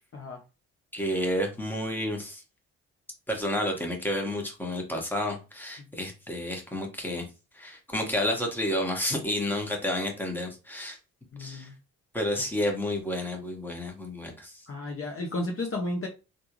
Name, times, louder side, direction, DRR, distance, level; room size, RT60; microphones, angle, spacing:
voice 1, 0.9-2.4 3.3-7.3 7.5-11.0 11.4-11.7 12.1-14.5, left 1 dB, 5° left, 1.3 m, -30 dB
voice 2, 11.3-11.7 14.7-16.1, left 2 dB, 30° left, 0.9 m, -33 dB
3.4 x 2.6 x 3.0 m
hypercardioid pair, 45°, 43 cm